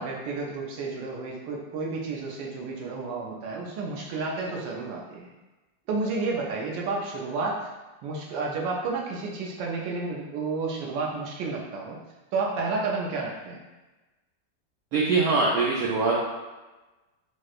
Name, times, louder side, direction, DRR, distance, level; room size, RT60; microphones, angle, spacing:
voice 1, 0.0-5.3 5.9-7.7 8.0-12.0 12.3-13.6, right 3 dB, 90° right, -2 dB, 1.3 m, -31 dB
voice 2, 14.9-16.2, right 3 dB, 70° right, -5 dB, 0.9 m, -23 dB
4.4 x 2.0 x 2.4 m, 1.1 s
omnidirectional pair, 2.0 m